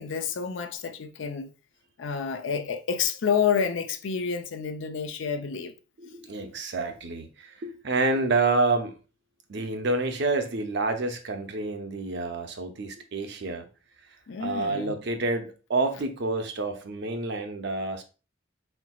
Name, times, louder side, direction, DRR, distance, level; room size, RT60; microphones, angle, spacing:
voice 1, 0.0-1.5 2.0-5.7 14.3-15.0, left 6 dB, 70° left, 0.5 m, -29 dB
voice 2, 6.0-8.9 9.5-13.7 14.4-18.0, right 3 dB, 60° right, 0.6 m, -28 dB
4.4 x 3.9 x 2.3 m
head